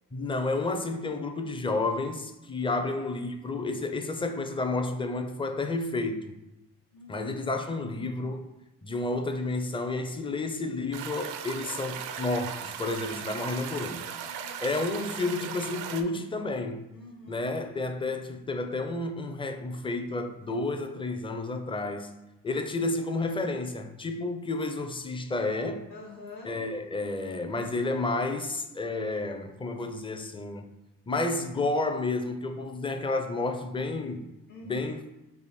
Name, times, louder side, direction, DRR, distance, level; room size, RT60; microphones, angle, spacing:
voice 1, 0.1-6.3 7.1-8.5 8.8-14.0 14.6-16.8 17.3-22.1 22.4-25.9 26.4-30.7 31.1-34.3 34.6-35.0, left 2 dB, 15° left, 0.5 m, -31 dB
voice 2, 6.9-7.3 13.4-15.2 16.9-17.5 25.9-26.6 34.5-34.9, left 2 dB, 55° left, 1.1 m, -48 dB
sound 1, 10.9-16.0, right 8 dB, 80° right, 0.5 m, -37 dB
3.4 x 2.6 x 4.2 m
supercardioid pair, 60°, 37 cm